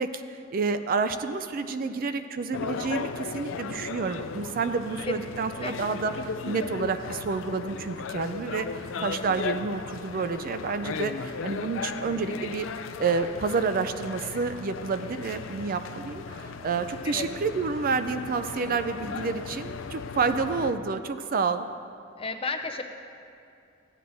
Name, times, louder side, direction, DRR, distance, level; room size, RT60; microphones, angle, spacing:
voice 1, 0.0-12.7 13.0-21.7, right 4 dB, 45° right, 10 dB, 0.4 m, -29 dB
sound 1, 2.5-20.7, left 5 dB, 90° left, 0.4 m, -36 dB
voice 2, 8.9-9.3 17.0-17.3 22.2-22.8, left 4 dB, 30° left, 6 dB, 0.6 m, -33 dB
15.0 x 9.7 x 2.7 m, 2.5 s
head